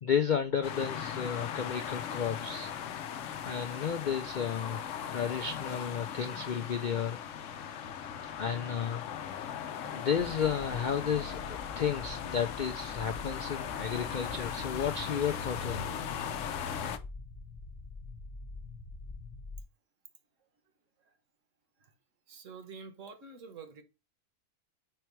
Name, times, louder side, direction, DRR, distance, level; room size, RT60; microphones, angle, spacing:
voice 1, 0.0-2.7 3.4-4.8 5.1-7.2 8.2-9.5 9.9-16.0, left 7 dB, 80° left, 0.4 m, -33 dB
sound 1, 0.6-17.0, left 8 dB, 65° left, 0.9 m, -38 dB
sound 2, 10.2-19.6, left 3 dB, 35° left, 1.5 m, -46 dB
voice 2, 22.3-23.8, right 5 dB, 60° right, 1.3 m, -47 dB
4.5 x 4.5 x 4.6 m
omnidirectional pair, 1.5 m